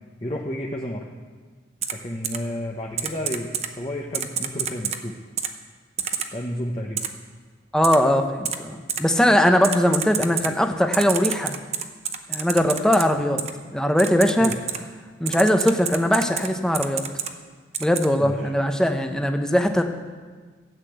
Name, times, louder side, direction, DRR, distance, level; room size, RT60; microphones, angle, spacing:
voice 1, 0.2-1.0 1.9-5.2 6.3-7.1 14.4-14.6 18.2-18.5, left 1 dB, 30° left, -1 dB, 1.0 m, -31 dB
Typing, 1.8-1.9 2.2-2.4 3.0-3.7 4.1-5.0 5.4-5.5 6.0-6.3 7.0-7.1 7.8-8.0 8.4-8.6 8.9-9.0 9.6-10.5 10.9-13.0 13.4-13.5 14.0-14.8 15.3-16.5 16.7-17.3 17.7-18.1, right 8 dB, 40° right, 0.8 m, -27 dB
voice 2, 7.7-11.6 12.3-13.4 13.7-14.5 15.2-17.0 17.8-19.8, equal, 5° left, 5 dB, 0.9 m, -20 dB
13.5 x 8.3 x 8.0 m, 1.5 s
head